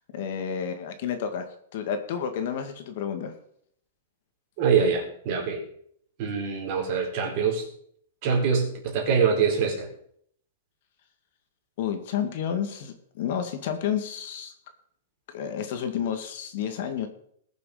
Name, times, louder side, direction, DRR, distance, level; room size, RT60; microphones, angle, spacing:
voice 1, 0.1-1.5 1.7-3.3 11.8-14.5 15.3-17.1, left 8 dB, 50° left, 6 dB, 2.0 m, -30 dB
voice 2, 4.6-5.6 6.2-7.6 8.2-9.9, right 6 dB, 40° right, 0 dB, 4.4 m, -24 dB
20.0 x 6.9 x 5.0 m, 0.65 s
supercardioid pair, 165°, 0 cm